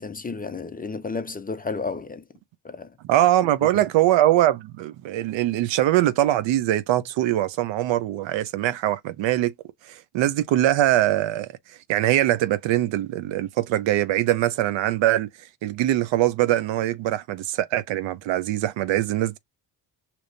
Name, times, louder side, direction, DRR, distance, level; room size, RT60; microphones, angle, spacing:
voice 1, 0.0-2.2 2.6-2.9, left 4 dB, 20° left, 0.5 m, -32 dB
voice 2, 3.1-9.5 9.8-11.5 11.9-15.3 15.6-19.4, right 13 dB, 70° right, 0.7 m, -22 dB
5.1 x 3.0 x 2.6 m
cardioid pair, 85°, 46 cm